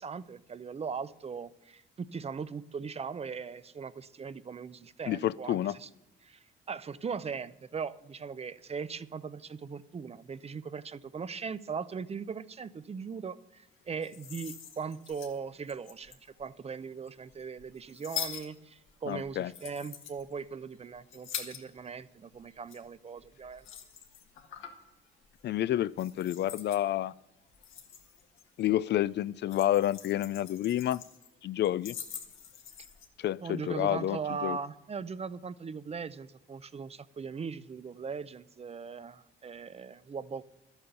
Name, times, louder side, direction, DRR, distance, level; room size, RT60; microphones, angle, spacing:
voice 1, 0.0-5.9 6.2-23.7 33.4-40.4, right 5 dB, 30° right, 15 dB, 0.6 m, -39 dB
voice 2, 5.1-5.7 19.1-19.5 25.4-27.1 28.6-31.0 31.4-31.9 33.2-34.6, left 12 dB, 60° left, 18 dB, 0.4 m, -29 dB
sound 1, 13.9-16.4 17.1-22.1 22.3-24.9 25.2-25.5 26.0-26.8 27.4-28.7 28.9-31.3 31.6-33.1, left 8 dB, 85° left, 1.8 m, -44 dB
12.5 x 8.9 x 6.9 m, 0.91 s
cardioid pair, 90°, 20 cm